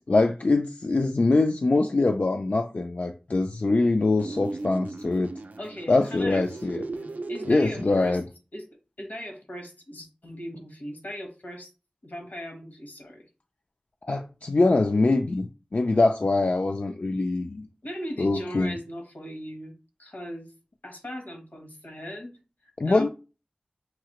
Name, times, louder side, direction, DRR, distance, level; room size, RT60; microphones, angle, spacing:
voice 1, 0.1-5.3 5.9-6.8 7.5-8.2 14.0-17.7 18.2-18.7 22.8-23.1, left 2 dB, 55° left, 5 dB, 0.4 m, -23 dB
sound 1, 4.2-8.2, right 2 dB, 70° right, 0.4 m, -37 dB
voice 2, 5.6-8.2 8.5-8.7 9.0-11.7 12.0-13.3 17.8-20.5 20.8-23.1, equal, 75° left, 4 dB, 1.1 m, -39 dB
5.8 x 2.8 x 2.9 m, 0.32 s
wide cardioid pair, 60°, 3 cm